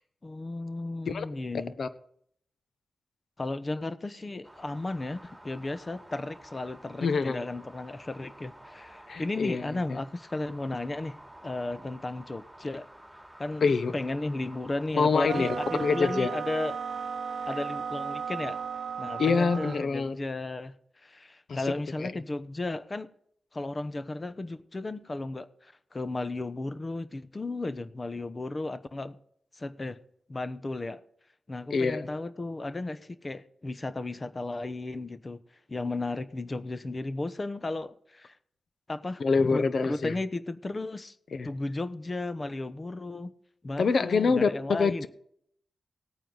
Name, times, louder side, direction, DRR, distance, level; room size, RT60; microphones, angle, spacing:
voice 1, 0.2-1.7 3.4-11.2 11.4-12.9 13.4-13.6 13.9-16.8 17.5-18.6 19.0-20.7 21.0-23.1 23.5-29.2 29.6-30.0 30.3-31.0 31.5-35.4 35.7-38.4 38.9-39.2 39.5-41.1 41.4-43.3 43.6-45.1, left 2 dB, 35° left, 0.9 m, -34 dB
sound 1, 4.4-19.8, right 1 dB, 5° right, 3.0 m, -52 dB
voice 2, 7.0-7.4 9.1-9.8 13.6-13.9 14.9-16.3 19.2-20.2 21.5-21.6 22.0-22.1 31.7-32.1 39.2-40.1 41.3-41.5 43.8-45.1, left 4 dB, 65° left, 1.0 m, -26 dB
sound 2, 15.2-19.9, right 6 dB, 75° right, 0.6 m, -35 dB
17.5 x 9.1 x 4.0 m
cardioid pair, 60°, 0 cm